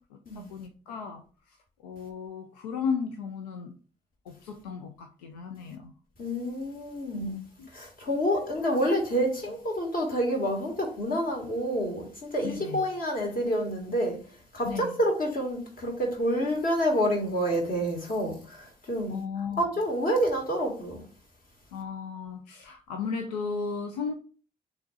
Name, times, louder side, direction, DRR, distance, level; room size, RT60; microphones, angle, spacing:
voice 1, 0.1-1.6 1.8-3.7 4.3-5.9 7.3-7.7 12.4-12.8 14.6-15.0 19.1-19.7 21.7-24.1, left 5 dB, 75° left, 0.5 m, -35 dB
voice 2, 6.2-7.4 7.7-14.2 14.5-19.2 19.6-21.0, equal, 45° left, 1.9 m, -28 dB
6.5 x 3.1 x 2.4 m
figure-of-eight pair, 40°, 21 cm